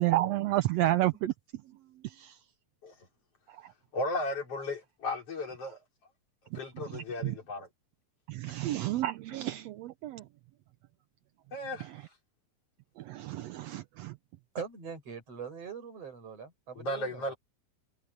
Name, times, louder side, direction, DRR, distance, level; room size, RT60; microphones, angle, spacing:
voice 1, 0.0-1.3 2.0-2.4 6.9-7.4 8.3-10.2 13.0-14.1, right 15 dB, 75° right, 1.6 m, -30 dB
voice 2, 3.9-5.8 6.5-7.7 11.5-11.9 16.8-17.3, left 1 dB, 50° left, 5.0 m, -35 dB
voice 3, 14.6-17.3, right 6 dB, 50° right, 8.6 m, -42 dB
omnidirectional pair, 3.5 m